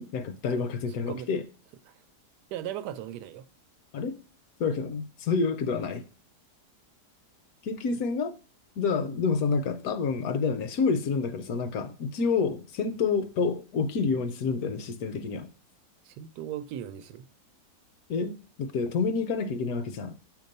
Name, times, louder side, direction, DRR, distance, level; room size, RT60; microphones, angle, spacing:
voice 1, 0.0-1.4 3.9-4.1 4.6-6.0 7.6-8.3 8.8-15.5 18.1-20.2, left 5 dB, 70° left, 1.0 m, -28 dB
voice 2, 2.5-3.5 16.0-17.3, right 11 dB, 90° right, 1.2 m, -37 dB
7.1 x 2.9 x 5.2 m
omnidirectional pair, 1.7 m